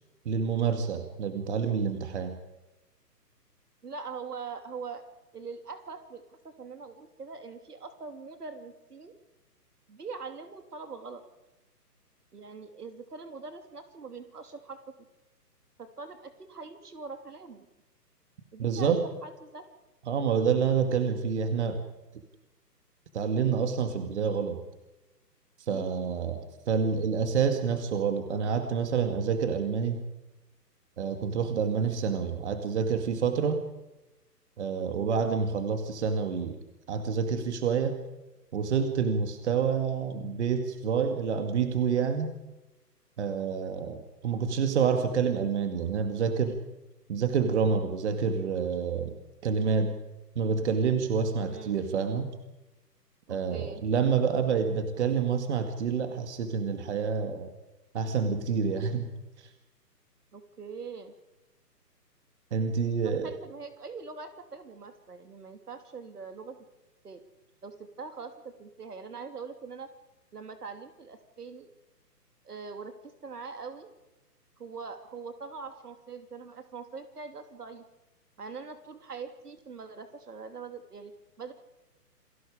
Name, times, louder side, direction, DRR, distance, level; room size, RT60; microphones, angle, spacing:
voice 1, 0.3-2.4 18.6-19.1 20.1-21.8 23.1-24.6 25.6-30.0 31.0-33.6 34.6-36.6 36.9-38.0 38.5-42.3 43.2-46.6 47.1-50.0 50.4-52.3 53.3-57.5 57.9-59.1 59.4-59.5 62.5-63.3, right 6 dB, 45° right, 7 dB, 2.3 m, -28 dB
voice 2, 3.8-5.0 5.3-9.1 9.9-11.2 12.3-14.8 15.8-17.7 18.5-18.9 19.2-19.6 25.7-26.1 35.0-35.2 44.2-44.4 51.5-51.8 53.3-53.8 60.3-61.1 63.0-66.6 67.0-67.2 67.6-69.9 70.3-71.7 72.4-73.9 74.6-77.8 78.4-81.1 81.4-81.5, right 5 dB, 70° right, 7 dB, 3.0 m, -42 dB
29.0 x 20.5 x 5.1 m, 1.0 s
figure-of-eight pair, 140°, 49 cm